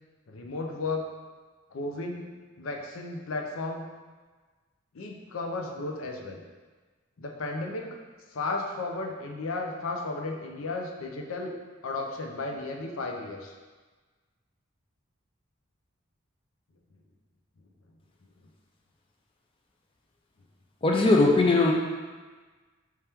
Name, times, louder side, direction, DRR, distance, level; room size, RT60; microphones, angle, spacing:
voice 1, 0.3-1.1 1.7-2.3 2.6-3.9 4.9-6.4 7.2-8.0 8.3-11.6 11.8-13.5, left 3 dB, 85° left, 2 dB, 0.5 m, -34 dB
voice 2, 20.8-21.7, left 2 dB, 25° left, 0 dB, 0.4 m, -20 dB
4.7 x 2.9 x 3.4 m, 1.4 s
head